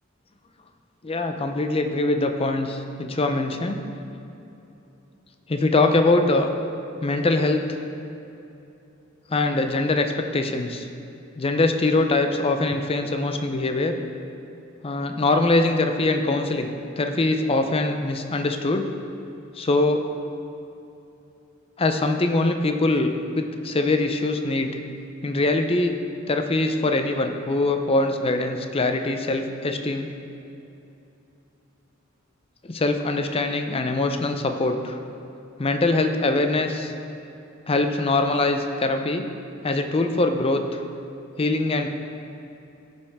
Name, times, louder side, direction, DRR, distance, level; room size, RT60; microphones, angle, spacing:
voice 1, 1.0-3.8 5.5-6.5 7.0-7.8 9.3-10.9 11.4-14.0 14.8-16.7 17.0-18.8 19.6-20.0 21.8-24.8 25.2-26.0 26.3-30.1 32.6-35.0 35.6-36.9 37.7-39.2 39.6-40.8 41.4-41.9, left 2 dB, 30° left, 6 dB, 0.6 m, -23 dB
14.5 x 5.5 x 3.5 m, 2.8 s
head